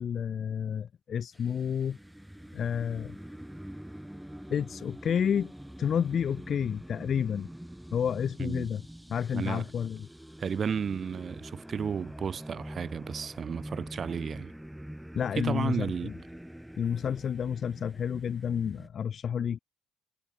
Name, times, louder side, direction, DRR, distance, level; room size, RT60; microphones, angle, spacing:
voice 1, 0.0-2.0 2.5-3.2 4.5-5.5 5.8-7.5 7.9-8.8 9.1-10.1 15.1-16.1 16.8-19.6, left 8 dB, 55° left, 0.3 m, -30 dB
sound 1, 1.3-18.9, equal, 5° right, 1.0 m, -45 dB
voice 2, 9.3-9.6 10.4-14.5 15.3-16.1, right 6 dB, 50° right, 0.6 m, -33 dB
supercardioid pair, 65°, 0 cm